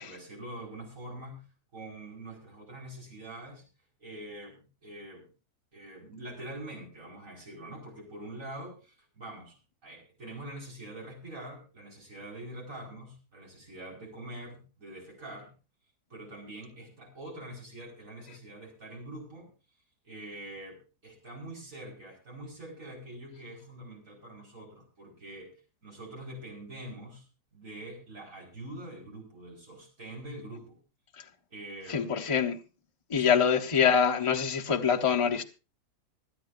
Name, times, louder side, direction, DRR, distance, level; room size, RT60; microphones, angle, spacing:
voice 1, 0.0-1.4 1.7-3.7 4.0-5.3 5.7-9.6 9.8-15.5 16.1-19.5 20.0-25.6 25.8-27.3 27.5-30.8 31.5-32.4 33.2-33.4, right 1 dB, 55° right, 5.4 m, -44 dB
voice 2, 31.9-32.6 33.1-35.4, left 7 dB, 20° left, 1.1 m, -25 dB
26.0 x 9.4 x 2.6 m
omnidirectional pair, 1.7 m